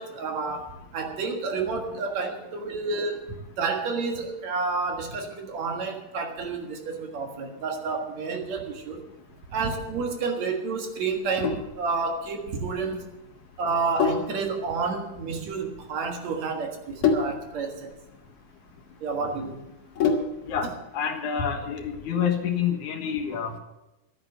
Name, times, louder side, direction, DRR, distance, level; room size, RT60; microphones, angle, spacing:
voice 1, 0.0-9.0 9.5-13.1 13.6-17.9 19.0-19.6, right 4 dB, 70° right, 3 dB, 2.9 m, -30 dB
Sink (filling or washing), 11.1-20.6, left 5 dB, 55° left, 2.4 m, -30 dB
voice 2, 20.9-23.6, left 7 dB, 90° left, 4 dB, 2.9 m, -27 dB
12.5 x 8.9 x 8.1 m, 0.94 s
omnidirectional pair, 3.3 m